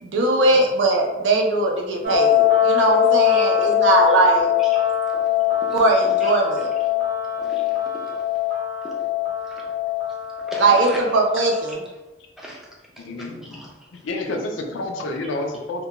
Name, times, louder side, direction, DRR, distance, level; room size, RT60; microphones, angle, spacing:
voice 1, 0.0-4.5 5.7-6.7 10.6-11.8, right 2 dB, 70° right, 0 dB, 0.5 m, -20 dB
sound 1, 2.0-11.7, left 10 dB, 45° right, 0.8 m, -22 dB
voice 2, 4.6-4.9 5.6-6.6 7.4-8.1 8.8-8.9 9.4-9.6 10.5-11.0 11.3-11.4 12.4-12.6 13.0-14.0, equal, ahead, -4 dB, 0.4 m, -38 dB
voice 3, 13.0-13.6 14.0-15.8, left 2 dB, 75° left, 3 dB, 0.4 m, -29 dB
2.3 x 2.2 x 2.9 m, 1.1 s
head